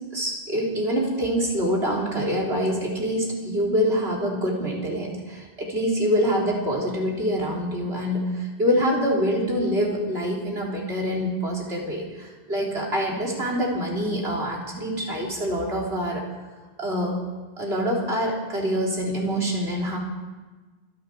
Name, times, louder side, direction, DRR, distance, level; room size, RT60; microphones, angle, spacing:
voice 1, 0.1-16.2 16.8-17.2 17.6-20.0, equal, 90° right, -3 dB, 3.9 m, -25 dB
28.0 x 11.0 x 4.6 m, 1.3 s
omnidirectional pair, 1.0 m